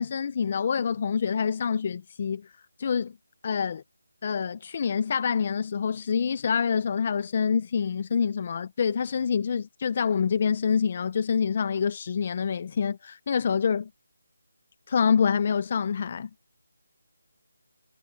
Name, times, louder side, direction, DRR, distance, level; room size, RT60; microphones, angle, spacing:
voice 1, 0.0-2.5 2.8-3.1 3.4-3.8 4.2-13.9 14.9-16.3, left 6 dB, 35° left, 0.7 m, -26 dB
figure-of-eight pair, 170°, 0 cm